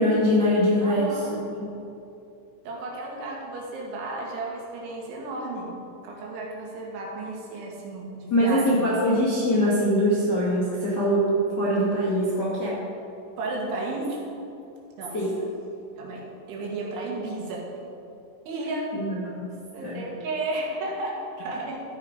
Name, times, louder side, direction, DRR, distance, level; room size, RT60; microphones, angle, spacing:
voice 1, 0.0-1.1 1.5-1.7 8.3-12.8 15.1-15.3 18.9-19.5 19.8-20.0, equal, 45° left, -8 dB, 1.3 m, -23 dB
voice 2, 0.8-1.4 2.7-5.8 6.0-8.9 13.4-14.2 15.0-15.5 16.0-17.7 18.5-18.9 19.7-21.8, right 2 dB, 80° right, -2 dB, 4.2 m, -33 dB
14.0 x 7.9 x 5.2 m, 2.7 s
omnidirectional pair, 5.4 m